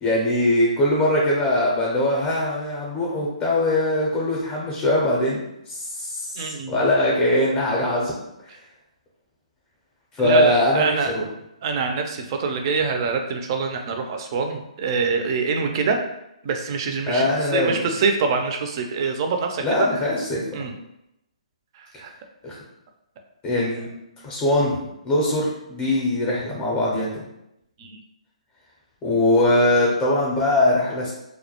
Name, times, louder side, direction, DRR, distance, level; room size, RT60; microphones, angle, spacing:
voice 1, 0.0-8.1 10.1-11.3 17.1-17.9 19.6-20.6 22.4-22.5 23.4-23.9 24.2-27.2 29.0-31.1, left 1 dB, 20° left, -4 dB, 0.5 m, -21 dB
voice 2, 6.4-6.8 10.2-11.1 11.6-16.0 16.4-20.0 20.5-20.7 21.8-22.1 27.8-28.0, right 4 dB, 40° right, 4 dB, 0.4 m, -25 dB
2.2 x 2.1 x 2.8 m, 0.85 s
hypercardioid pair, 145°, 4 cm